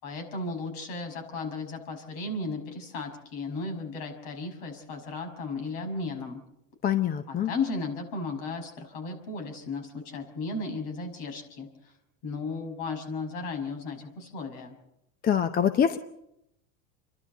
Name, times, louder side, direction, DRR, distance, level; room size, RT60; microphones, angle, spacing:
voice 1, 0.0-6.4 7.3-11.9 12.2-14.7, left 3 dB, 60° left, 5 dB, 6.0 m, -35 dB
voice 2, 6.8-7.5 15.2-16.0, left 9 dB, 25° left, 11 dB, 0.7 m, -24 dB
28.5 x 12.0 x 9.2 m, 0.82 s
supercardioid pair, 145°, 39 cm